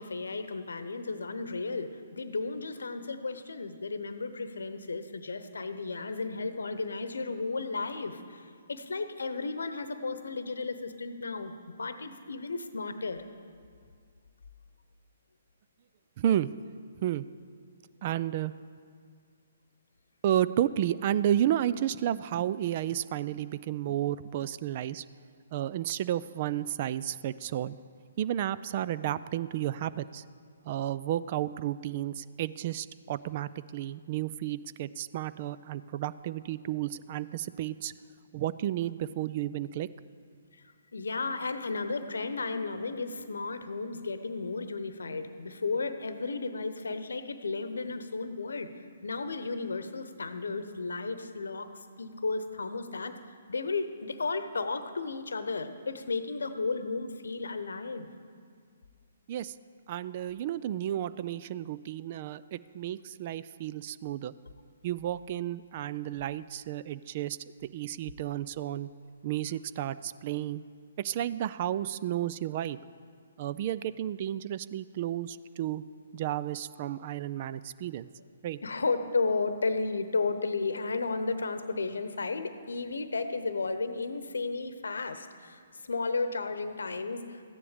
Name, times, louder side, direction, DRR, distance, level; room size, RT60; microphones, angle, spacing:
voice 1, 0.0-11.5 11.8-13.2 40.9-51.7 52.0-53.2 53.5-58.1 78.6-87.4, left 3 dB, 75° left, 10 dB, 0.9 m, -33 dB
voice 2, 16.2-16.5 17.0-17.3 18.0-18.5 20.2-25.0 25.5-27.8 28.2-30.2 30.6-37.9 38.3-39.9 59.3-59.5 59.9-64.3 64.8-68.9 69.2-70.6 71.0-72.8 73.4-75.8 76.1-78.1 78.4-78.6, right 12 dB, 40° right, 15 dB, 0.3 m, -32 dB
14.0 x 9.9 x 5.0 m, 2.1 s
figure-of-eight pair, 130°, 0 cm